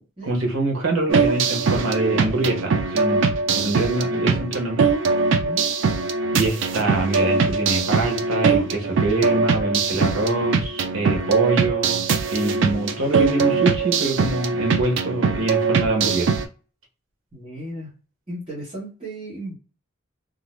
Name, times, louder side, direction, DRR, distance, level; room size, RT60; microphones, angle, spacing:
voice 1, 0.2-3.2 3.5-4.9 6.3-16.4, right 2 dB, 80° right, 2 dB, 0.9 m, -24 dB
sound 1, 1.1-16.4, right 4 dB, 65° right, 0.4 m, -22 dB
voice 2, 17.3-17.9 18.3-19.5, right 1 dB, 25° right, -9 dB, 1.0 m, -35 dB
2.5 x 2.0 x 3.0 m, 0.36 s
head